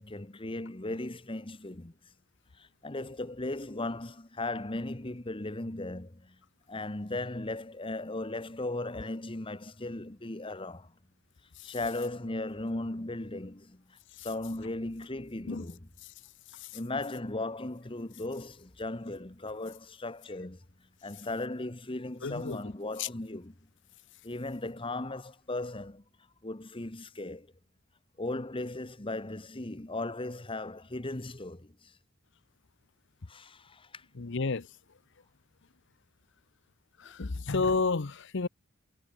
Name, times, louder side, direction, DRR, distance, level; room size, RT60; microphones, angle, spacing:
voice 1, 0.0-1.9 2.6-6.4 6.7-10.9 11.6-15.9 16.7-20.6 21.0-23.5 24.2-26.0 26.4-27.5 28.2-31.9 33.3-34.0, left 2 dB, 25° left, 1.3 m, -37 dB
voice 2, 22.2-22.6 23.0-23.1 34.2-34.7 37.0-38.5, left 4 dB, 60° left, 0.8 m, -31 dB
head